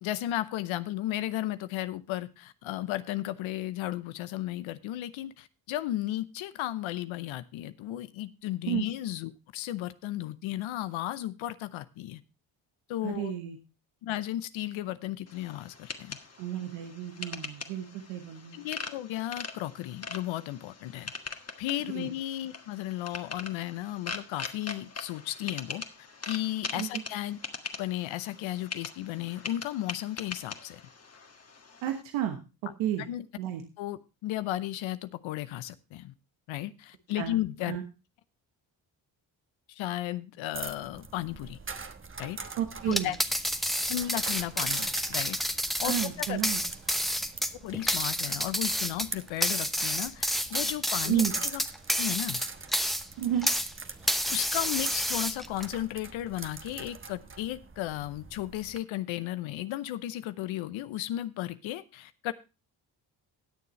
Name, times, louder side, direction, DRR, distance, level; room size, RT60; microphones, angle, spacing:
voice 1, 0.0-12.2 12.9-13.3 14.0-16.2 18.5-21.1 21.6-27.4 27.8-30.8 33.1-33.2 33.8-36.1 36.5-37.8 39.7-41.6 42.2-42.4 42.8-43.2 43.9-46.4 47.6-51.6 52.0-52.4 54.3-62.3, left 14 dB, 80° left, 13 dB, 0.8 m, -34 dB
voice 2, 13.0-13.6 16.4-18.6 21.9-22.1 26.7-27.0 31.8-33.1 33.4-33.6 37.1-37.4 37.6-37.8 42.6-43.1 45.8-46.6 51.0-51.3 53.2-53.5, right 10 dB, 90° right, 5 dB, 1.3 m, -32 dB
sound 1, 15.3-32.0, left 4 dB, 30° left, 1.7 m, -42 dB
sound 2, 40.5-58.8, right 4 dB, 25° right, 1.2 m, -44 dB
sound 3, 42.8-53.7 54.1-55.7, equal, ahead, 0.9 m, -29 dB
18.5 x 6.9 x 3.1 m, 0.29 s
supercardioid pair, 55°, 47 cm